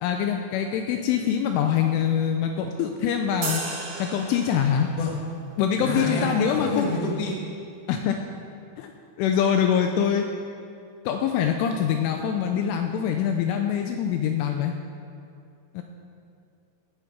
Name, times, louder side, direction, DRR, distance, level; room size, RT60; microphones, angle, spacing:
voice 1, 0.0-3.6 4.0-4.9 5.6-6.9 7.9-8.2 8.8-8.9 9.2-10.3 11.1-14.7 15.7-15.8, left 8 dB, 85° left, 4 dB, 3.0 m, -24 dB
sound 1, 3.4-5.0, right 3 dB, 75° right, 6.4 m, -34 dB
voice 2, 5.8-7.4, left 1 dB, 50° left, -2 dB, 2.6 m, -28 dB
17.5 x 9.8 x 5.1 m, 2.4 s
omnidirectional pair, 6.0 m